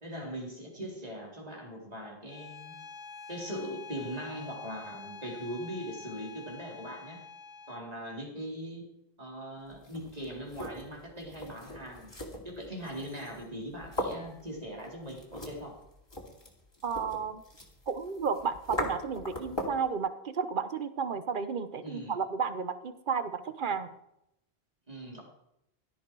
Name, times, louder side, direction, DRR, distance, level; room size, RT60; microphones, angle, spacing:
voice 1, 0.0-2.7 3.3-7.2 7.7-8.9 9.2-12.1 12.4-15.7 21.8-22.2 24.9-25.2, equal, 40° right, -1 dB, 3.9 m, -40 dB
Bowed string instrument, 2.3-7.9, left 4 dB, 50° left, 1.1 m, -47 dB
sound 1, 9.7-19.9, equal, 25° left, 2.8 m, -40 dB
voice 2, 16.8-17.4 17.9-23.9, right 6 dB, 55° right, 12 dB, 1.1 m, -32 dB
17.0 x 12.5 x 4.8 m, 0.82 s
omnidirectional pair, 1.0 m